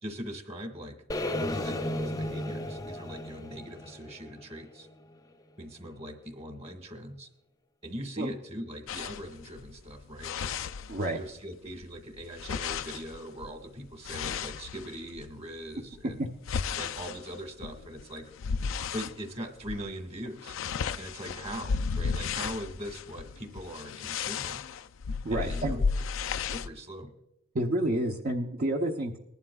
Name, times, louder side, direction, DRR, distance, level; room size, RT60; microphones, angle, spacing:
voice 1, 0.0-4.9 5.6-7.3 7.8-10.5 11.1-16.2 16.7-18.3 18.9-20.6 21.0-24.6 25.3-25.8 26.4-27.1, equal, 30° right, 5 dB, 1.7 m, -41 dB
sound 1, 1.1-5.1, left 1 dB, 20° left, 0.5 m, -34 dB
sound 2, 8.9-11.4 11.7-15.3 15.9-19.2 19.6-19.9 20.2-26.7, left 5 dB, 75° left, 0.4 m, -34 dB
voice 2, 10.9-11.2 16.0-16.3 25.2-25.8 27.5-29.2, right 1 dB, 45° right, 1 dB, 0.8 m, -29 dB
19.5 x 11.5 x 2.3 m, 0.87 s
head